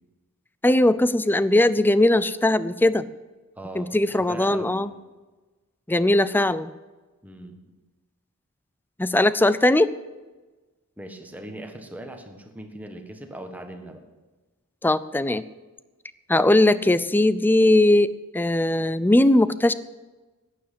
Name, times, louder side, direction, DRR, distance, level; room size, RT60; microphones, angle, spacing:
voice 1, 0.6-3.0 3.8-4.9 5.9-6.7 9.0-9.9 14.8-15.4 16.3-19.7, left 1 dB, 10° left, 16 dB, 0.4 m, -19 dB
voice 2, 3.6-4.9 7.2-7.7 11.0-14.1, right 1 dB, 5° right, 4 dB, 1.5 m, -39 dB
11.5 x 9.9 x 8.5 m, 1.2 s
head